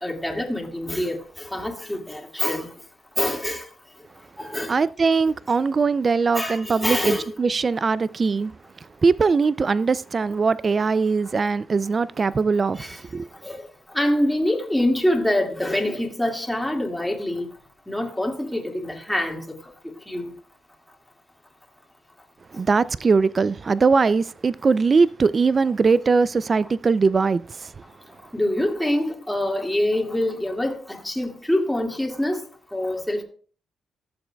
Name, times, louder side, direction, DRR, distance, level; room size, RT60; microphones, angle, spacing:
voice 1, 0.0-2.7 3.2-3.6 4.4-4.7 6.3-7.2 12.8-13.0 13.4-13.7 13.9-17.5 17.9-19.4 20.1-20.3 28.3-32.4 32.7-33.2, left 1 dB, 5° left, 2.0 m, -25 dB
voice 2, 4.7-8.5 9.0-13.3 22.5-27.7, right 4 dB, 40° right, 0.3 m, -21 dB
14.0 x 6.9 x 2.2 m
cardioid pair, 75°, 0 cm